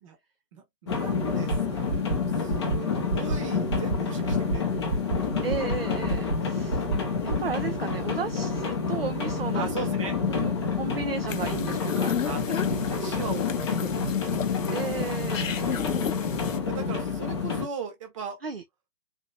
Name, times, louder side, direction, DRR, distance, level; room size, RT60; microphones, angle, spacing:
voice 1, 0.5-5.0 9.5-10.2 12.2-14.3 15.5-16.0 16.6-18.4, right 5 dB, 20° right, 1.0 m, -39 dB
sound 1, 0.9-17.7, left 5 dB, 15° left, 0.7 m, -28 dB
sound 2, 1.5-1.6 1.9-2.2 2.5-2.8 3.1-3.4 3.7-4.0 4.3-4.6 4.9-5.2 5.5-5.8 6.1-6.4 6.7-7.0 7.3-7.5, right 2 dB, 65° right, 1.9 m, -27 dB
voice 2, 5.4-6.9 7.2-9.7 10.3-12.1 14.7-15.6 18.4-18.6, right 6 dB, 40° right, 0.5 m, -34 dB
sound 3, 11.3-16.6, left 8 dB, 50° left, 0.7 m, -34 dB
4.2 x 2.7 x 3.1 m
figure-of-eight pair, 145°, 49 cm